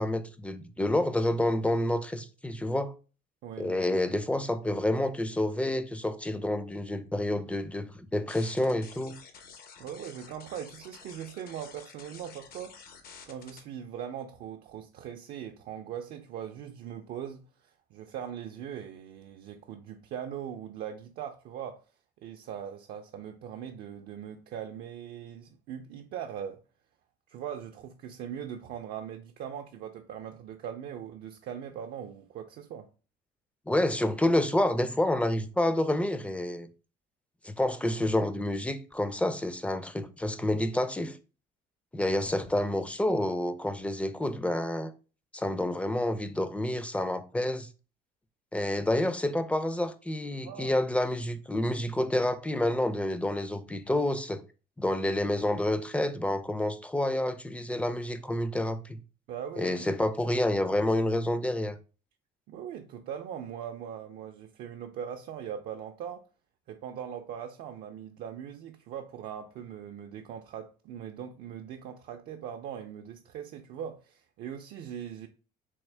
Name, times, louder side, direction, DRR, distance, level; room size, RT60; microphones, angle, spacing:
voice 1, 0.0-2.9 3.6-9.2 33.7-36.7 37.4-41.2 41.9-44.9 45.3-47.7 48.5-54.4 54.8-59.0 59.6-61.8, left 1 dB, 5° left, 0.3 m, -28 dB
voice 2, 3.4-3.9 9.8-12.8 13.3-21.8 22.2-26.6 27.3-32.9 50.4-50.7 59.3-59.9 62.5-66.3 66.7-75.3, right 9 dB, 70° right, 0.4 m, -40 dB
sound 1, 8.3-13.6, left 6 dB, 60° left, 0.8 m, -50 dB
3.5 x 2.9 x 3.2 m
cardioid pair, 110°, 17 cm